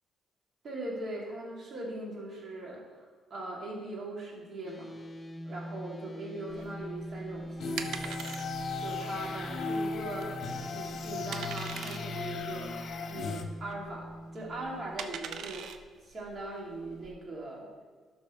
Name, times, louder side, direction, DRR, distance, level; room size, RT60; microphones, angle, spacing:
voice 1, 0.6-5.0 5.5-8.2 8.8-10.3 10.7-12.7 13.1-15.7 16.0-17.7, right 2 dB, 50° right, -3 dB, 2.6 m, -40 dB
sound 1, 4.7-15.0, equal, 20° left, 0.6 m, -43 dB
sound 2, 6.5-17.1, right 7 dB, 75° right, 0.5 m, -43 dB
sound 3, 7.6-13.4, left 4 dB, 60° left, 1.0 m, -37 dB
12.5 x 6.0 x 3.2 m, 1.5 s
cardioid pair, 90°, 0 cm